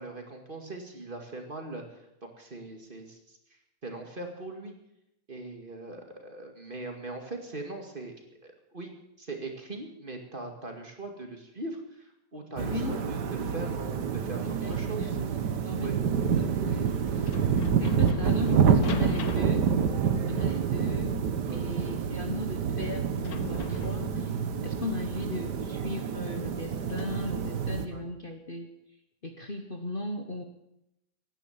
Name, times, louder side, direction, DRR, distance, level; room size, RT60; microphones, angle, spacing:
voice 1, 0.0-1.8 2.2-3.4 3.8-4.7 5.3-8.1 8.4-8.9 9.2-15.2 15.8-16.0 21.5-21.6 27.9-28.1, right 2 dB, 30° right, 3 dB, 2.2 m, -40 dB
voice 2, 12.6-13.0 14.4-15.3 15.6-17.3 17.8-19.7 20.3-21.2 21.5-24.3 24.6-28.7 29.2-30.4, left 2 dB, 35° left, 4 dB, 1.2 m, -37 dB
sound 1, 12.6-27.9, right 7 dB, 85° right, 1.7 m, -28 dB
sound 2, 16.2-27.8, left 7 dB, 65° left, 1.6 m, -44 dB
17.0 x 10.5 x 7.4 m, 0.84 s
omnidirectional pair, 1.7 m